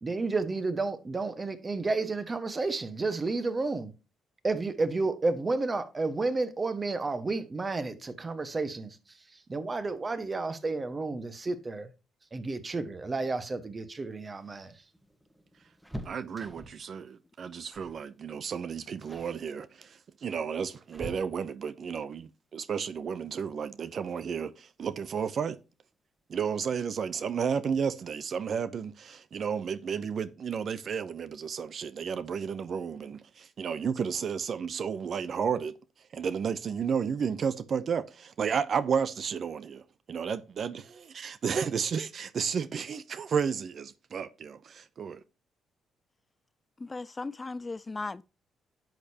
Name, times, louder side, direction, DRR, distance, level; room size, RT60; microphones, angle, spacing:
voice 1, 0.0-3.9 4.4-9.0 9.5-11.9 12.3-14.7, right 3 dB, 30° right, 1.4 m, -31 dB
sound 1, 14.2-16.9 17.7-18.0 18.3-18.6 19.0-19.4 20.2-21.7 23.4-23.5 23.9-24.0 25.2-25.6 25.9-26.0 26.3-26.5, right 1 dB, 5° right, 1.4 m, -45 dB
voice 2, 16.0-25.6 26.3-35.7 36.1-39.8 40.1-45.2, right 6 dB, 55° right, 0.6 m, -32 dB
voice 3, 46.8-48.2, left 3 dB, 25° left, 0.3 m, -37 dB
10.5 x 6.7 x 2.8 m
cardioid pair, 90°, 0 cm